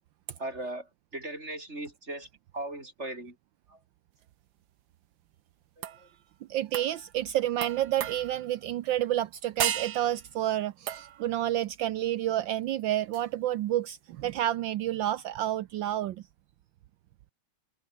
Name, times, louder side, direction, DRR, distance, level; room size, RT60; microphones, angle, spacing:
voice 1, 0.4-2.3 2.5-3.4 3.7-3.8 5.8-6.1, right 1 dB, 30° right, 5.5 m, -38 dB
sound 1, 5.8-6.1 6.7-7.0 7.6-8.5 9.6-10.3 10.9-11.3 13.1-13.2, right 10 dB, 60° right, 1.5 m, -34 dB
voice 2, 6.5-16.2, right 13 dB, 75° right, 1.4 m, -29 dB
omnidirectional pair, 2.2 m